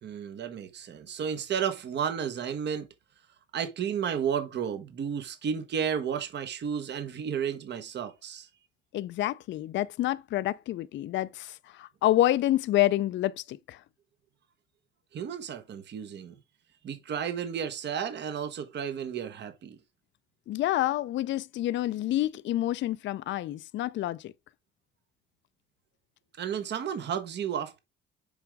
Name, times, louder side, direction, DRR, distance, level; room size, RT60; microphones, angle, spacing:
voice 1, 0.0-2.9 3.5-8.5 15.1-16.3 16.8-19.8 26.4-27.8, right 8 dB, 60° right, 1.2 m, -32 dB
voice 2, 8.9-13.8 20.5-24.3, left 14 dB, 70° left, 0.4 m, -28 dB
7.1 x 5.0 x 3.4 m
cardioid pair, 90°, 20 cm